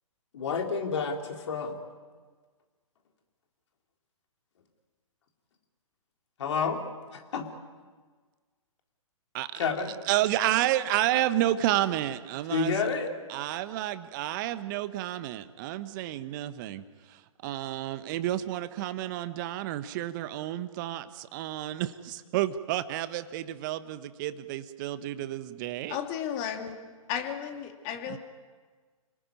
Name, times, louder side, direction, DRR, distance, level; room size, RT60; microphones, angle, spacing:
voice 1, 0.3-1.8 6.4-6.8 7.1-7.5 9.5-9.9 12.5-13.1, left 5 dB, 55° left, 3 dB, 3.9 m, -29 dB
voice 2, 10.1-12.9 13.3-16.8 17.4-26.0 28.1-28.2, right 14 dB, 35° right, 12 dB, 1.3 m, -30 dB
voice 3, 25.9-26.7 27.1-28.2, left 9 dB, 30° left, 5 dB, 2.7 m, -33 dB
29.0 x 19.0 x 9.6 m, 1.5 s
figure-of-eight pair, 125°, 18 cm